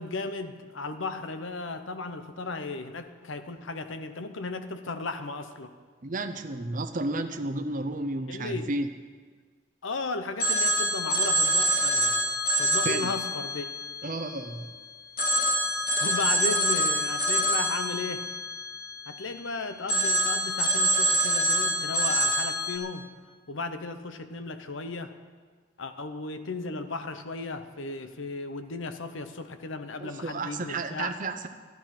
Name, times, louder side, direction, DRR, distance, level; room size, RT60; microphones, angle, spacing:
voice 1, 0.0-5.7 8.3-8.7 9.8-12.3 12.6-13.7 16.0-18.2 19.1-23.1 23.5-25.1 25.8-31.1, left 3 dB, 75° left, 9 dB, 0.9 m, -35 dB
voice 2, 6.0-8.9 12.8-13.1 14.0-14.7 30.0-31.5, right 2 dB, 40° right, 7 dB, 0.7 m, -32 dB
Telephone, 10.4-14.7 15.2-19.4 19.9-22.8, right 1 dB, 45° left, 2.1 m, -26 dB
13.0 x 12.0 x 5.9 m, 1.5 s
head